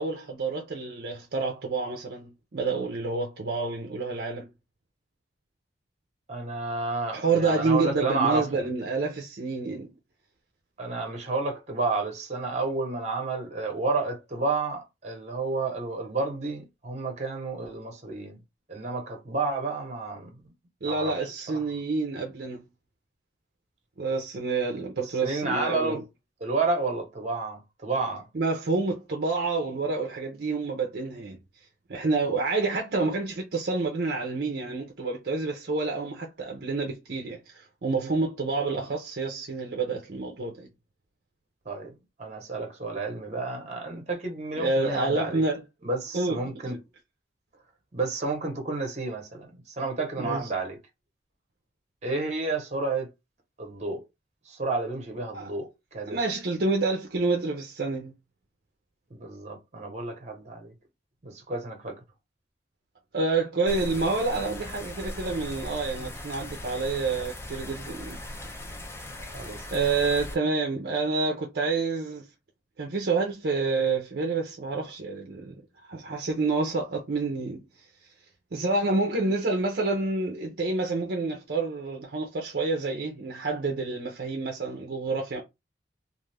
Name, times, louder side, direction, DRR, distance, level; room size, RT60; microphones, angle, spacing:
voice 1, 0.0-4.5 7.1-9.9 20.8-22.6 24.0-26.0 28.3-31.4 31.9-40.7 44.6-45.6 46.1-46.4 46.7-46.8 50.2-50.5 55.3-55.5 56.1-58.1 63.1-68.2 69.7-72.3 72.8-75.5 75.9-77.6 78.5-85.4, right 3 dB, 60° right, 0.6 m, -28 dB
voice 2, 6.3-8.5 10.8-18.4 18.7-20.4 20.8-21.2 25.0-26.0 26.4-28.3 41.6-41.9 42.2-45.4 45.8-46.8 47.9-50.8 52.0-53.1 53.6-54.0 54.5-56.2 59.1-60.7 61.2-62.0 69.3-69.6, right 3 dB, 40° right, 1.0 m, -31 dB
sound 1, 63.7-70.4, left 1 dB, 15° left, 0.4 m, -39 dB
2.4 x 2.4 x 3.3 m
head